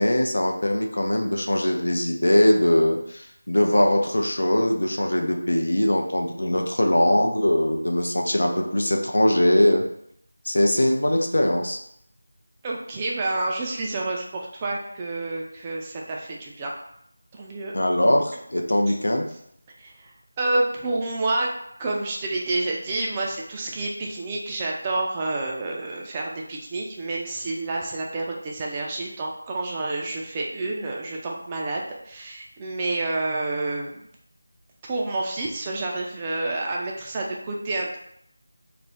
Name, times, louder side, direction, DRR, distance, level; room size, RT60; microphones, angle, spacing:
voice 1, 0.0-9.8 10.5-11.8 17.7-19.3, left 1 dB, 80° left, 2 dB, 0.5 m, -21 dB
voice 2, 12.6-16.7 17.3-17.7 18.9-19.0 19.8-20.1 20.4-21.5 21.8-34.0 34.9-38.0, right 2 dB, 20° right, -2 dB, 0.3 m, -29 dB
2.4 x 2.1 x 3.4 m, 0.73 s
figure-of-eight pair, 170°, 0 cm